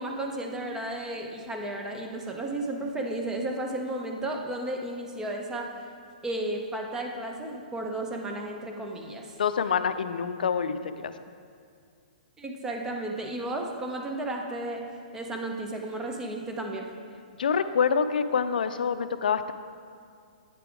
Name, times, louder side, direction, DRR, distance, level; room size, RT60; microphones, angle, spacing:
voice 1, 0.0-5.7 6.2-9.3 12.4-14.8 15.1-16.9, right 1 dB, 10° right, 2 dB, 0.6 m, -33 dB
voice 2, 9.4-11.1 17.4-19.5, left 6 dB, 80° left, 11 dB, 0.3 m, -26 dB
8.9 x 3.4 x 4.7 m, 2.3 s
hypercardioid pair, 145°, 5 cm